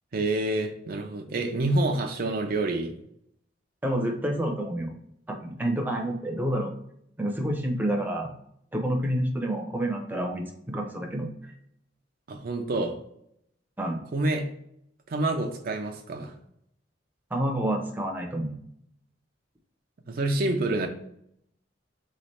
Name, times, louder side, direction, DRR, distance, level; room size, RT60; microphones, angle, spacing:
voice 1, 0.1-2.9 12.3-13.0 14.1-14.5 15.1-16.3 20.1-20.9, right 2 dB, 50° right, 4 dB, 0.5 m, -27 dB
voice 2, 3.8-5.0 5.3-6.7 7.2-8.3 8.7-11.3 13.8-14.0 17.3-18.5, right 1 dB, 10° right, 2 dB, 0.7 m, -28 dB
3.9 x 3.2 x 4.0 m, 0.73 s
head